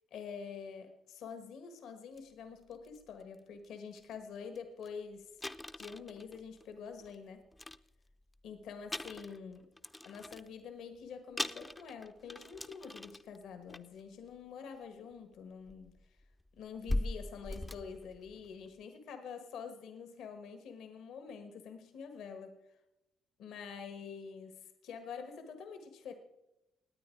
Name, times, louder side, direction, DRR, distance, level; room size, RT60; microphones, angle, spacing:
voice 1, 0.1-5.3 5.8-7.5 8.4-9.7 10.0-16.0 16.6-22.6 23.4-26.1, left 6 dB, 80° left, 7 dB, 1.5 m, -46 dB
sound 1, 2.2-2.3 2.7-3.0 3.6-3.7 4.0-4.1 4.5-4.6 4.8-4.9 5.4-7.1 7.5-8.4 8.8-10.6 11.0-11.1 11.4-13.4 13.7-14.0 15.1-15.2 15.7-18.7, left 1 dB, 15° left, 0.5 m, -41 dB
18.5 x 9.1 x 4.6 m, 0.91 s
cardioid pair, 90°, 0 cm